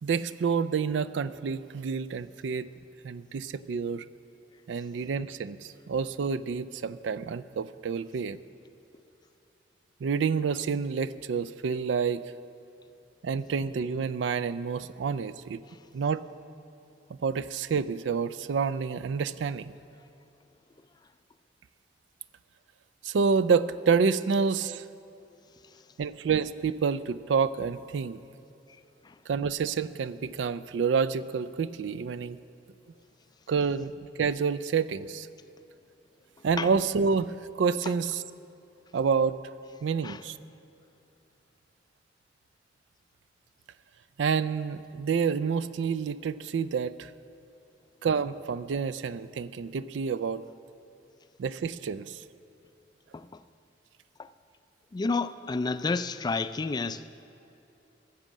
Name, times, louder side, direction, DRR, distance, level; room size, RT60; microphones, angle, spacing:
voice 1, 0.0-2.7 3.0-4.0 4.7-8.4 10.0-12.2 13.2-15.6 15.9-16.2 17.1-19.7 23.0-24.8 26.0-28.2 29.3-32.4 33.5-33.9 34.2-35.3 36.4-38.2 38.9-39.4 39.8-40.4 44.2-47.1 48.0-50.4 51.4-52.2, right 5 dB, 80° right, 15 dB, 0.4 m, -28 dB
voice 2, 54.9-57.1, left 3 dB, 25° left, 13 dB, 0.3 m, -30 dB
13.0 x 7.2 x 7.4 m, 2.7 s
head